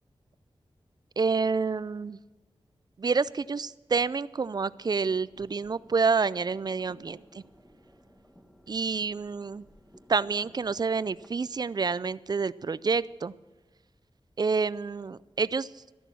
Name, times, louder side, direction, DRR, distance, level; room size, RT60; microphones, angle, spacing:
voice 1, 1.2-2.2 3.0-7.4 8.7-9.6 10.1-13.3 14.4-15.8, right 4 dB, 40° right, 19 dB, 0.3 m, -28 dB
sound 1, 4.4-11.3, equal, ahead, 1.1 m, -57 dB
13.5 x 11.0 x 6.1 m, 1.2 s
wide cardioid pair, 105°, 10 cm